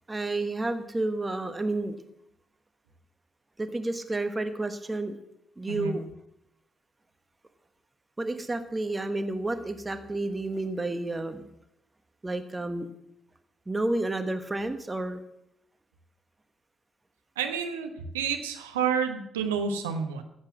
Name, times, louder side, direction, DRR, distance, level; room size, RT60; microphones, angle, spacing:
voice 1, 0.1-2.0 3.6-5.2 5.6-6.0 8.2-11.4 12.2-12.9 13.7-15.2, right 2 dB, 20° right, 9 dB, 1.3 m, -30 dB
voice 2, 17.4-20.2, right 6 dB, 80° right, 5 dB, 1.3 m, -29 dB
15.0 x 8.2 x 7.3 m, 0.80 s
figure-of-eight pair, 40°, 0 cm